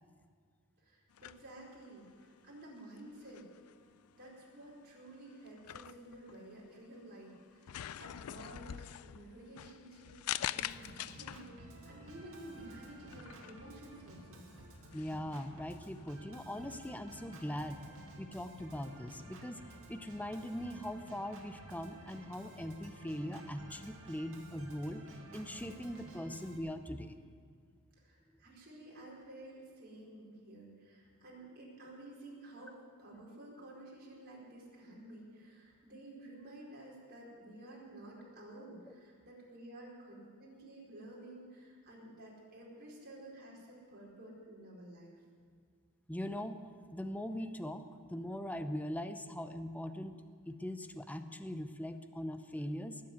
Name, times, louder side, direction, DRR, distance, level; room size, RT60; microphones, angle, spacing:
voice 1, 0.8-3.5 4.2-10.1 10.5-14.5 28.0-45.1, right 1 dB, 45° right, -4 dB, 4.6 m, -52 dB
sound 1, 1.1-16.1, left 11 dB, 75° left, 0.4 m, -46 dB
Organ, 10.6-26.6, right 1 dB, 65° right, 2.5 m, -53 dB
voice 2, 14.9-17.8 18.2-19.6 19.9-25.0 25.3-27.2 46.1-46.6 46.9-50.2 50.4-53.0, equal, 5° left, 9 dB, 0.7 m, -41 dB
19.5 x 7.6 x 9.4 m, 2.1 s
head